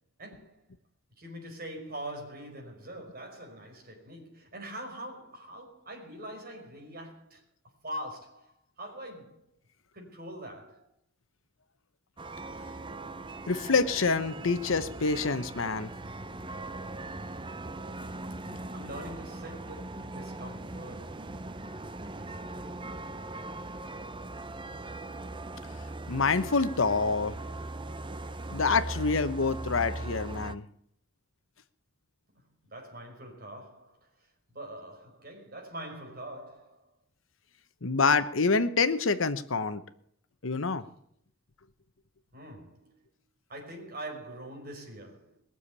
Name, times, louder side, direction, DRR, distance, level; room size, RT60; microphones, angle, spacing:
voice 1, 0.2-0.6 1.2-7.4 7.8-9.5 9.9-10.9 18.7-21.3 22.2-22.7 32.3-34.1 34.5-36.9 42.3-42.9 43.5-45.4, right 1 dB, 45° right, 5.1 m, -43 dB
sound 1, 12.2-30.5, right 2 dB, 25° right, 0.7 m, -40 dB
voice 2, 13.5-15.9 26.1-27.4 28.5-30.6 37.8-39.8 40.4-40.9, left 4 dB, 70° left, 1.0 m, -27 dB
21.5 x 7.2 x 8.4 m
head